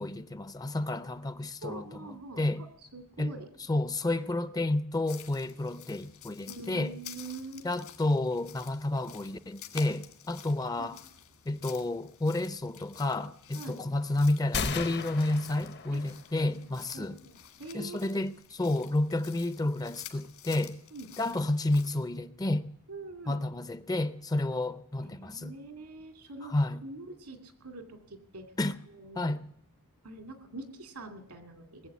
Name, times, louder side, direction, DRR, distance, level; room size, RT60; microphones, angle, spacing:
voice 1, 0.0-2.6 3.2-3.3 3.7-6.9 7.6-11.0 11.5-17.1 17.7-20.8 21.2-22.7 23.3-25.5 26.4-26.8 28.6-28.7 29.2-29.4, left 2 dB, 15° left, 0.5 m, -30 dB
voice 2, 1.6-2.7 2.9-3.5 6.5-7.7 10.8-11.0 13.5-13.8 15.9-16.0 16.5-18.2 20.9-21.1 22.9-23.4 25.0-26.5 26.8-28.5 29.0-29.3 30.0-31.9, right 3 dB, 85° right, 2.3 m, -44 dB
sound 1, 5.1-22.1, left 10 dB, 65° left, 1.7 m, -51 dB
sound 2, 14.5-16.4, left 5 dB, 50° left, 0.8 m, -36 dB
20.0 x 7.8 x 8.3 m
head